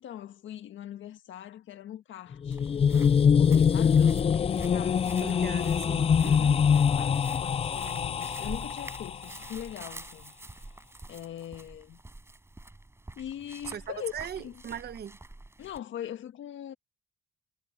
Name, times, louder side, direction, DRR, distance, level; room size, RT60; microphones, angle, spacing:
voice 1, 0.0-5.6 7.0-10.3 11.1-12.0 13.2-14.6 15.6-16.7, left 11 dB, 75° left, 1.6 m, -42 dB
sound 1, 2.3-9.3, left 7 dB, 30° left, 0.4 m, -24 dB
sound 2, 2.5-15.8, right 2 dB, 15° right, 5.1 m, -47 dB
voice 2, 5.2-6.6 13.7-15.2, right 9 dB, 55° right, 1.0 m, -39 dB
cardioid pair, 90°, 20 cm